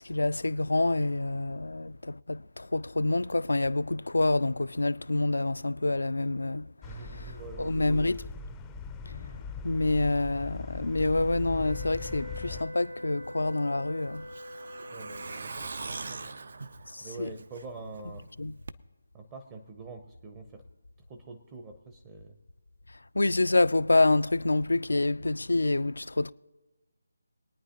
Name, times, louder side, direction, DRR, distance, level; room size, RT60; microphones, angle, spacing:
voice 1, 0.0-6.7 7.1-7.3 7.6-8.3 9.1-9.2 9.6-14.3 16.9-17.3 18.4-18.5 23.1-26.3, left 2 dB, 75° left, 0.4 m, -27 dB
sound 1, 6.8-12.6, left 5 dB, 10° left, 0.5 m, -41 dB
voice 2, 6.8-8.0 14.9-15.8 16.1-16.3 17.0-18.3 19.1-20.6 21.1-22.4, right 4 dB, 20° right, 0.7 m, -45 dB
sound 2, 11.6-15.5, left 1 dB, 80° right, 1.0 m, -44 dB
Truck, 13.3-18.0 18.3-18.4 18.7-18.8, right 3 dB, 55° right, 0.5 m, -41 dB
22.5 x 9.4 x 2.9 m
figure-of-eight pair, 155°, 0 cm